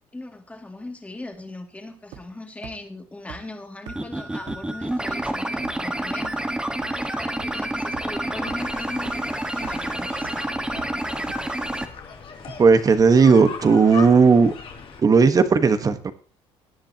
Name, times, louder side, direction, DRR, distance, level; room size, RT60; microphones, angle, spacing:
voice 1, 0.1-6.4 6.8-11.8, left 2 dB, 10° left, 4 dB, 2.6 m, -39 dB
sound 1, 2.1-2.4 2.6-2.7 3.3-3.4 3.9-4.0 4.5-4.6 5.1-5.2 5.6-5.9 6.2-6.3 6.8-6.9 7.4-7.5 7.9-8.0 8.5-8.6 9.1-9.2 9.6-9.9 10.2-10.3 10.8-10.9 11.3-11.4, right 11 dB, 85° right, 1.8 m, -40 dB
sound 2, 3.9-11.9, right 1 dB, 5° right, 1.5 m, -28 dB
sound 3, 7.4-15.0, left 6 dB, 50° left, 2.9 m, -40 dB
voice 2, 12.6-14.5 15.0-16.1, right 5 dB, 30° right, 10 dB, 1.4 m, -15 dB
19.0 x 10.5 x 3.0 m, 0.37 s
cardioid pair, 100°, 12 cm